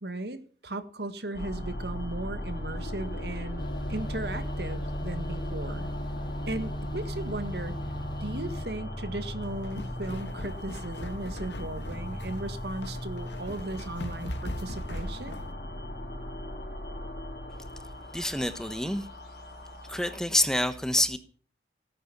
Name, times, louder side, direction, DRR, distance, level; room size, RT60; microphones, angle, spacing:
voice 1, 0.0-5.9 6.5-7.8 8.2-15.4, right 2 dB, 70° right, 10 dB, 1.8 m, -36 dB
sound 1, 1.3-20.2, left 1 dB, 70° left, 4.8 m, -38 dB
sound 2, 3.6-8.6, equal, 25° left, 0.9 m, -36 dB
sound 3, 9.4-15.5, left 1 dB, 90° left, 2.3 m, -40 dB
voice 2, 18.1-19.1 19.9-21.2, left 1 dB, 5° left, 10 dB, 1.1 m, -27 dB
17.5 x 10.0 x 7.2 m, 0.42 s
head